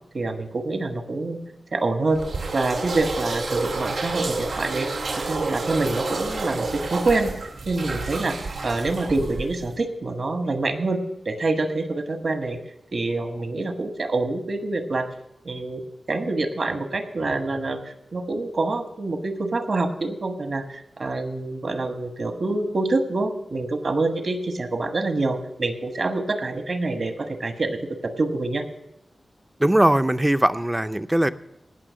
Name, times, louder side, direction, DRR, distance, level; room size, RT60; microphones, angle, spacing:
voice 1, 0.1-1.4 1.7-2.2 2.5-4.9 5.3-7.3 7.7-8.4 8.6-12.6 12.9-15.1 15.4-15.8 16.1-17.8 18.1-27.8 28.0-28.6, right 2 dB, 55° right, 7 dB, 1.3 m, -26 dB
sound 1, 2.1-9.8, right 3 dB, 85° right, 2.2 m, -30 dB
voice 2, 29.6-31.3, right 1 dB, 10° right, 13 dB, 0.4 m, -20 dB
17.5 x 6.2 x 6.2 m, 0.83 s
wide cardioid pair, 120°, 0 cm